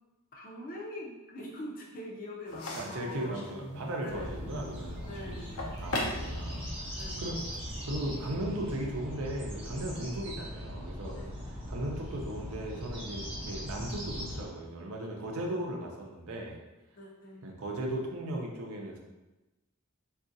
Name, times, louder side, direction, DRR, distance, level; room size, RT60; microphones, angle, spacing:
voice 1, 0.3-3.5 4.0-4.7 5.1-5.8 6.9-7.4 10.0-10.1 11.1-11.3 17.0-17.5, left 1 dB, 40° left, -3 dB, 0.5 m, -44 dB
sound 1, 2.5-8.4, left 1 dB, 80° left, 0.6 m, -41 dB
voice 2, 2.7-5.4 5.8-7.4 7.8-11.2 11.7-16.6 17.4-19.0, right 1 dB, 80° right, 0 dB, 0.6 m, -37 dB
sound 2, 4.1-14.5, equal, 25° right, 0.8 m, -40 dB
3.6 x 2.4 x 2.6 m, 1.1 s
head